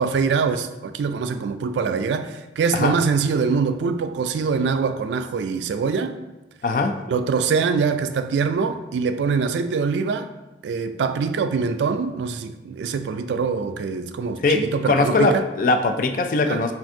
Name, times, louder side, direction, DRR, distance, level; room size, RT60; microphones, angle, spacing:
voice 1, 0.0-6.2 7.1-10.3 10.6-15.4 16.5-16.6, right 5 dB, 85° right, 0.3 m, -24 dB
voice 2, 14.4-16.7, left 3 dB, 50° left, 0.3 m, -21 dB
5.8 x 2.5 x 2.7 m
head